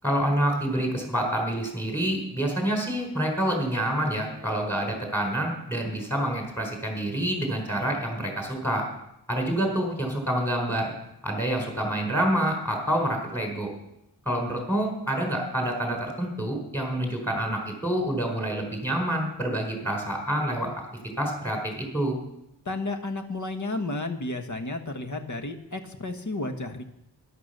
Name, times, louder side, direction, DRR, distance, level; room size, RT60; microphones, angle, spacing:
voice 1, 0.0-8.9 9.3-10.9 11.2-13.7 14.3-20.7 21.2-22.2, right 1 dB, 5° left, 1 dB, 4.4 m, -27 dB
voice 2, 22.6-26.8, left 2 dB, 45° left, 6 dB, 1.5 m, -32 dB
12.5 x 11.5 x 6.7 m, 0.83 s
wide cardioid pair, 110°, 41 cm